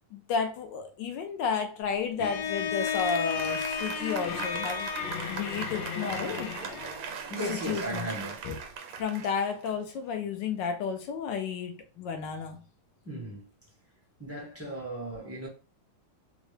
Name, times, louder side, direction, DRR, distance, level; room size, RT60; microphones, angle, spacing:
voice 1, 0.1-4.9 5.3-6.6 7.5-8.1 8.4-8.6 9.0-12.6, left 6 dB, 75° left, 1.1 m, -32 dB
Bowed string instrument, 2.2-7.1, left 7 dB, 90° left, 1.6 m, -33 dB
Applause, 2.6-10.2, right 6 dB, 75° right, 1.3 m, -40 dB
voice 2, 7.3-8.5 13.0-13.4 14.2-15.5, right 1 dB, 15° right, 0.5 m, -36 dB
3.7 x 2.1 x 3.2 m
omnidirectional pair, 2.3 m